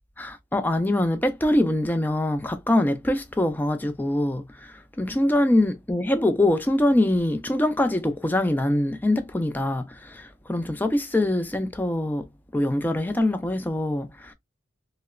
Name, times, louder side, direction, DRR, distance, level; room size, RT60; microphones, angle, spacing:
voice 1, 0.2-14.3, left 1 dB, 10° left, 0.4 m, -24 dB
2.9 x 2.0 x 2.3 m
head